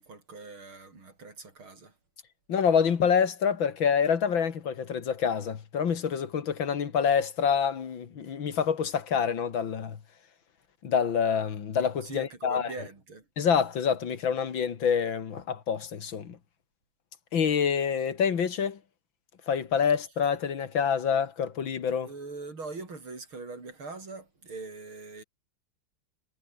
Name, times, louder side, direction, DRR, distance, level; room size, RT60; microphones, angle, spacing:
voice 1, 0.0-2.0 12.0-13.3 22.0-25.2, right 3 dB, 80° right, 5.9 m, -42 dB
voice 2, 2.5-10.0 10.8-12.7 13.4-16.4 17.3-18.8 19.5-22.1, left 7 dB, 70° left, 2.5 m, -27 dB
omnidirectional pair, 2.3 m